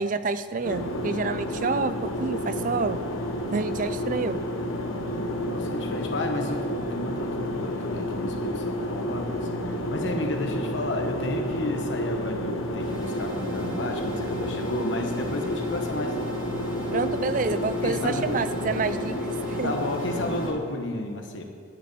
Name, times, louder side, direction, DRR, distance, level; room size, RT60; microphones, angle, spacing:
voice 1, 0.0-3.0 3.5-4.4 16.9-19.1 19.5-19.7, right 4 dB, 40° right, 12 dB, 0.5 m, -28 dB
sound 1, 0.6-20.5, left 1 dB, 90° left, 1.3 m, -30 dB
voice 2, 5.2-16.2 17.8-18.4 19.6-21.4, left 1 dB, 65° left, 4 dB, 1.3 m, -32 dB
sound 2, 12.8-20.5, right 2 dB, 70° right, 3.0 m, -43 dB
10.5 x 7.0 x 8.6 m, 2.1 s
head